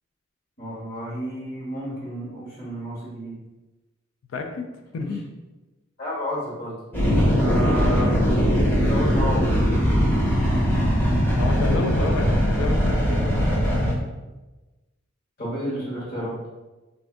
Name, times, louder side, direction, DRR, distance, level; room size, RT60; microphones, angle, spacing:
voice 1, 0.6-3.3 5.0-5.1 6.0-6.7 7.4-8.1 8.8-9.5 15.4-16.3, equal, 50° left, -6 dB, 1.3 m, -31 dB
voice 2, 4.3-5.2 7.1-7.4 11.1-13.4 13.9-14.1, left 3 dB, 70° left, 4 dB, 0.4 m, -30 dB
sound 1, 6.9-13.9, equal, 10° left, 0.7 m, -20 dB
2.6 x 2.4 x 3.5 m, 1.1 s
head